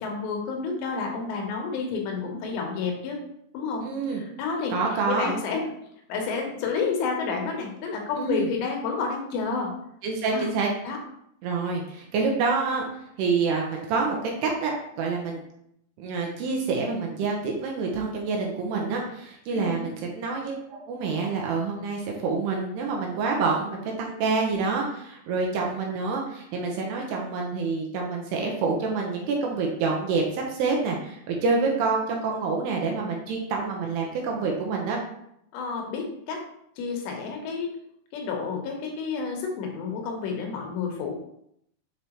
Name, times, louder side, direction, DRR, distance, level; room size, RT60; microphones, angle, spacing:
voice 1, 0.0-3.2 3.5-4.7 5.1-5.6 6.1-9.7 10.3-10.5 10.8-11.0 19.5-20.0 35.5-36.4 36.8-37.7 38.1-41.1, left 5 dB, 75° left, 1 dB, 3.0 m, -30 dB
voice 2, 3.8-4.2 4.7-5.3 8.2-8.5 10.0-10.7 11.4-14.7 15.0-15.4 16.0-20.6 20.9-35.0, right 4 dB, 75° right, 0 dB, 2.7 m, -27 dB
6.8 x 4.7 x 2.9 m, 0.74 s
omnidirectional pair, 5.2 m